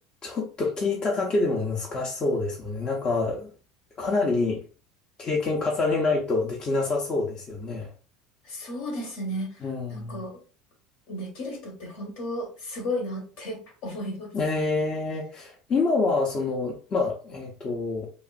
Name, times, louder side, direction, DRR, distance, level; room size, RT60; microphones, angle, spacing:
voice 1, 0.2-3.5 4.0-4.6 5.2-7.9 9.6-10.2 14.3-18.1, left 3 dB, 35° left, 0.6 m, -26 dB
voice 2, 8.4-10.4 11.1-14.3, left 1 dB, 65° left, 1.2 m, -34 dB
2.8 x 2.4 x 2.3 m
hypercardioid pair, 80°, 2 cm